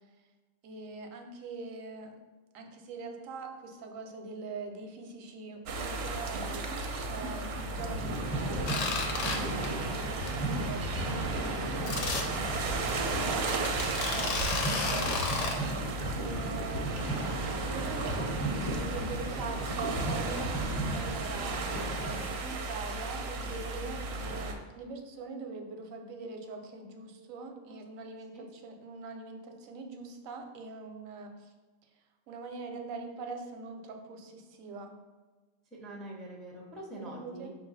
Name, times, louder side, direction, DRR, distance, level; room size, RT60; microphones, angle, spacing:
voice 1, 0.6-2.2 2.5-6.7 7.0-8.9 9.9-12.5 12.9-15.2 16.2-21.6 21.9-31.5 32.3-34.9 36.9-37.5, right 4 dB, 90° right, 4 dB, 1.0 m, -43 dB
sound 1, 5.7-24.5, right 3 dB, 65° right, 0.7 m, -35 dB
sound 2, 7.5-22.6, right 1 dB, 20° left, 1.0 m, -37 dB
sound 3, 8.7-9.4 9.6-9.9 10.3-10.4 10.7-10.8 11.9-12.2 12.9-13.0 13.5-15.5, left 4 dB, 75° left, 1.0 m, -32 dB
voice 2, 9.2-9.6 27.7-27.8 28.3-28.5 35.7-37.5, right 1 dB, ahead, -2 dB, 0.3 m, -44 dB
5.1 x 2.5 x 4.0 m, 1.3 s
omnidirectional pair, 1.3 m